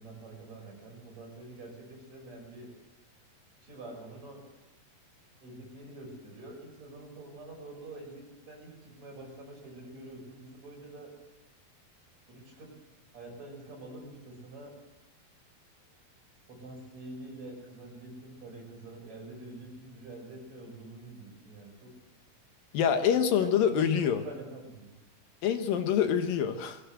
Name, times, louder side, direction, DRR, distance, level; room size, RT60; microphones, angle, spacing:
voice 1, 0.0-2.7 3.6-4.4 5.4-11.1 12.3-12.7 13.1-14.7 16.5-21.9 23.4-24.9, right 2 dB, 50° right, 0 dB, 7.3 m, -46 dB
voice 2, 22.7-24.2 25.4-26.8, left 8 dB, 75° left, 7 dB, 3.0 m, -26 dB
21.5 x 16.5 x 8.0 m, 1.0 s
omnidirectional pair, 4.1 m